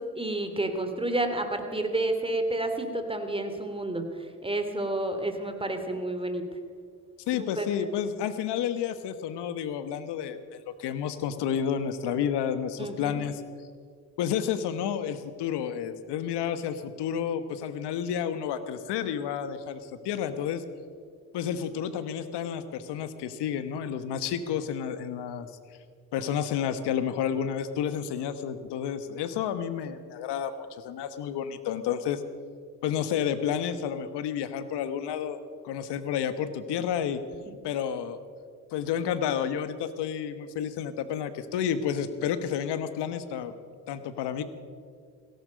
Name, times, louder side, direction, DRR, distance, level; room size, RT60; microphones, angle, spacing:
voice 1, 0.2-4.0 4.4-6.4 7.3-7.6 12.8-13.2, right 2 dB, 15° right, 6 dB, 2.8 m, -30 dB
voice 2, 7.3-13.4 14.2-20.6 21.3-25.5 26.1-32.2 32.8-35.4 35.6-37.2 37.6-38.2 38.7-43.5 43.9-44.4, left 8 dB, 70° left, 11 dB, 1.3 m, -30 dB
17.0 x 16.5 x 5.2 m, 2.1 s
hypercardioid pair, 55°, 42 cm